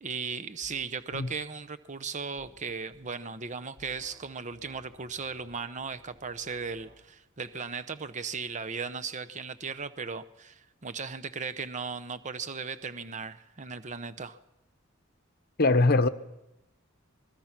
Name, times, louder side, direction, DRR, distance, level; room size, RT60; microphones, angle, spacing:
voice 1, 0.0-14.4, right 5 dB, 35° right, 0.8 m, -37 dB
sound 1, 0.6-0.8 1.1-1.3 2.4-3.1 3.8-4.2 4.5-7.0, equal, 55° right, 5.5 m, -57 dB
voice 2, 15.6-16.1, left 2 dB, 50° left, 1.0 m, -21 dB
25.0 x 21.0 x 6.0 m
head